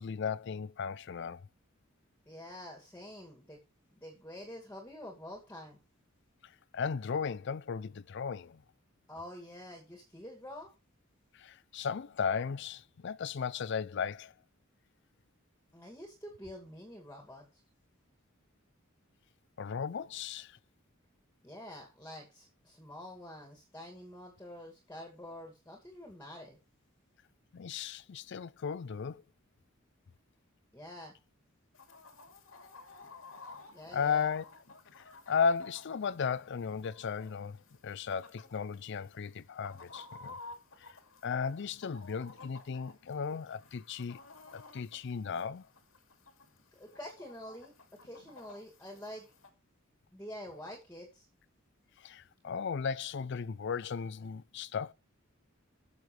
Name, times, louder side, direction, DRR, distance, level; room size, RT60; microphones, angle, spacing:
voice 1, 0.0-1.4 6.4-8.6 11.3-14.3 19.6-20.6 27.5-29.2 33.9-34.4 35.0-37.6 37.8-40.4 40.8-41.0 41.2-44.2 44.5-45.7 52.0-54.9, left 6 dB, 60° left, 0.4 m, -35 dB
voice 2, 2.3-3.6 3.9-5.8 9.1-10.7 15.7-17.6 21.4-26.6 30.7-31.1 33.7-34.3 46.7-47.7 48.0-49.3 50.1-51.3, left 1 dB, 10° left, 2.4 m, -47 dB
Chicken rooster, 31.7-49.5, left 3 dB, 90° left, 2.5 m, -54 dB
18.5 x 7.0 x 3.3 m
head